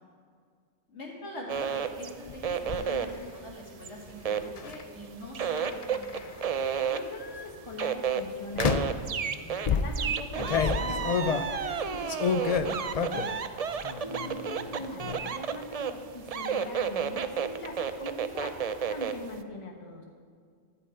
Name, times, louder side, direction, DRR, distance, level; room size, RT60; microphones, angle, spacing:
voice 1, 0.9-6.2 13.9-14.4, left 1 dB, 70° left, -2 dB, 2.8 m, -43 dB
sound 1, 1.5-5.0 5.3-19.3, right 7 dB, 50° right, 0.4 m, -31 dB
sound 2, 2.3-2.8 4.6-4.8 5.6-6.4 7.1-7.4 8.6-9.1 9.7-13.4 13.8-14.3 14.6-15.2, left 5 dB, 45° left, 0.5 m, -29 dB
voice 2, 6.9-9.0 9.4-13.4 14.0-20.0, left 2 dB, 25° left, 1 dB, 1.2 m, -41 dB
13.5 x 5.9 x 8.7 m, 2.1 s
omnidirectional pair, 1.2 m